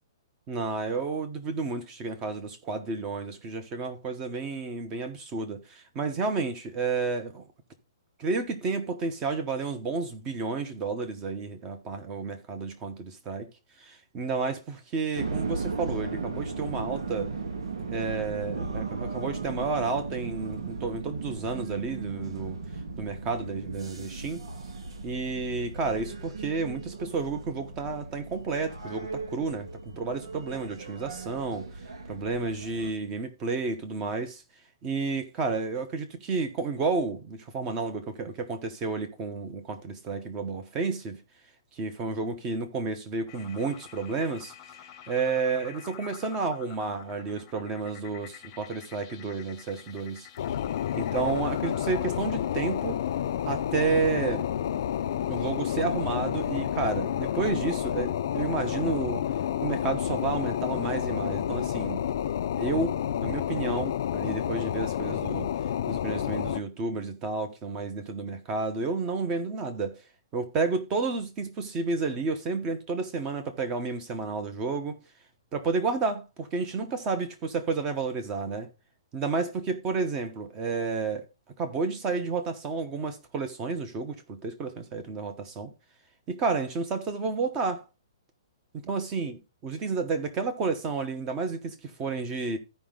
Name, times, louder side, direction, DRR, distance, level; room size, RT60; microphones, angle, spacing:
voice 1, 0.5-7.4 8.2-13.5 13.8-17.3 17.9-22.6 23.0-24.4 25.0-31.7 32.1-34.4 34.8-41.2 41.8-44.5 45.1-50.3 50.9-53.0 53.5-54.5 55.3-59.2 59.6-62.0 62.6-65.5 65.9-70.0 70.3-75.0 75.5-78.7 79.1-81.2 81.6-85.7 86.3-87.8 88.8-92.6, right 4 dB, 15° right, 1.0 m, -31 dB
sound 1, 15.2-32.9, right 4 dB, 85° right, 2.0 m, -36 dB
sound 2, 43.3-62.7, left 10 dB, 15° left, 1.0 m, -47 dB
sound 3, 50.4-66.6, left 10 dB, 45° left, 0.5 m, -30 dB
14.0 x 5.1 x 3.7 m
hypercardioid pair, 175°, 3 cm